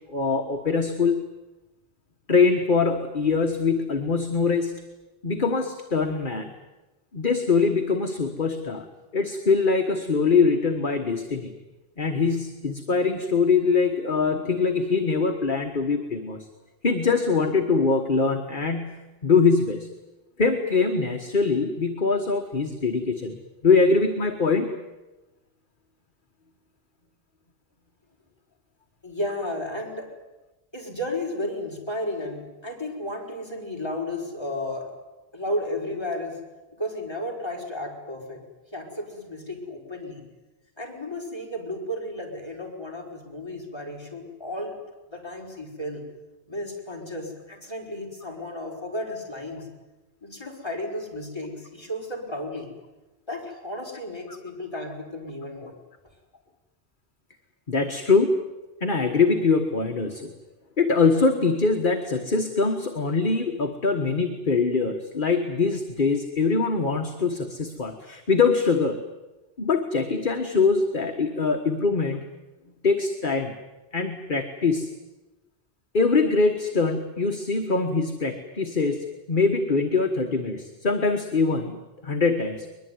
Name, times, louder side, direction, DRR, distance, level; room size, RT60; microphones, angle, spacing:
voice 1, 0.1-1.2 2.3-4.7 5.2-6.5 7.1-8.9 9.1-11.5 12.0-16.5 16.8-19.9 20.4-23.3 23.6-24.7 54.3-54.4 57.7-58.4 58.8-60.3 60.8-69.0 69.6-72.2 72.8-73.5 73.9-74.9 75.9-81.8 82.0-82.7, left 4 dB, 50° left, 4 dB, 1.6 m, -23 dB
voice 2, 29.0-30.1 30.7-34.9 35.3-36.4 36.8-38.5 38.7-40.2 40.8-44.8 45.1-46.0 46.5-49.7 50.2-52.7 53.3-55.7, left 1 dB, 25° left, -1 dB, 5.2 m, -33 dB
22.0 x 22.0 x 9.5 m, 1.1 s
omnidirectional pair, 1.1 m